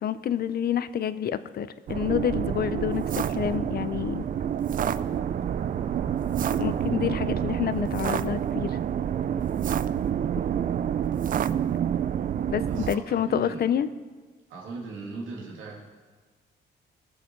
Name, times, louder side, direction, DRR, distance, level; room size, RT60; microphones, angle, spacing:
voice 1, 0.0-4.3 6.6-8.8 12.5-13.9, left 9 dB, 50° left, 14 dB, 0.6 m, -28 dB
sound 1, 1.9-12.9, right 9 dB, 45° right, 0.4 m, -28 dB
sound 2, 3.2-13.6, right 3 dB, 15° right, 0.8 m, -46 dB
voice 2, 12.6-13.6 14.5-15.8, right 3 dB, 80° right, -3 dB, 2.7 m, -38 dB
19.5 x 7.0 x 4.6 m, 1.4 s
cardioid pair, 90°, 20 cm